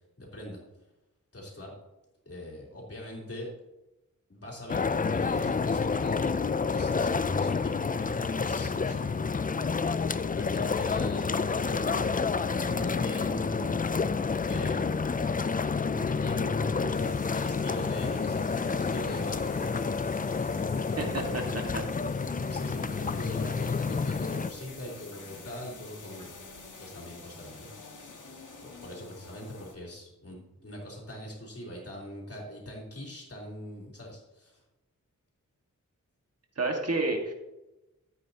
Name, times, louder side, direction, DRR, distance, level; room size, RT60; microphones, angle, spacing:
voice 1, 0.2-0.6 1.3-1.8 2.3-3.5 4.3-9.2 10.4-13.7 14.4-15.3 15.8-20.5 20.9-21.5 22.5-26.3 26.8-27.7 28.6-34.6, equal, 45° left, -3 dB, 3.6 m, -42 dB
sound 1, 4.7-24.5, left 5 dB, 25° left, 0.4 m, -29 dB
sound 2, 16.9-29.8, left 3 dB, 70° left, 1.7 m, -47 dB
voice 2, 21.0-21.8 36.6-37.3, right 2 dB, 50° right, 2 dB, 1.8 m, -30 dB
14.0 x 8.8 x 2.9 m, 0.98 s
wide cardioid pair, 85°, 32 cm